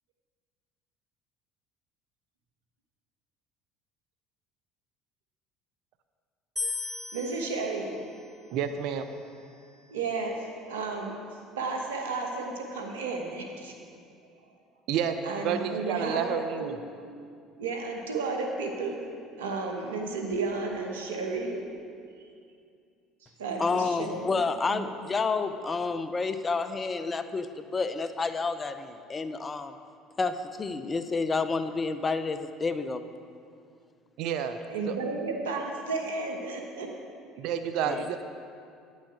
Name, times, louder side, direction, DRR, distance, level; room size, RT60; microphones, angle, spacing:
sound 1, 6.6-9.8, left 3 dB, 5° right, 2.2 m, -39 dB
voice 1, 7.1-8.0 9.9-11.2 11.6-13.7 15.2-16.3 16.6-16.8 17.6-19.0 19.4-21.8 22.2-22.4 23.2-24.4 24.7-24.9 34.7-36.9, right 3 dB, 90° right, 2 dB, 1.1 m, -33 dB
voice 2, 8.5-9.1 14.9-15.2 15.4-16.8 34.2-34.6 34.9-35.0 37.4-38.2, right 8 dB, 65° right, 9 dB, 0.5 m, -29 dB
voice 3, 23.6-29.7 30.2-33.0 37.8-38.1, left 4 dB, 30° left, 10 dB, 0.6 m, -30 dB
9.8 x 6.3 x 6.4 m, 2.4 s
hypercardioid pair, 70°, 0 cm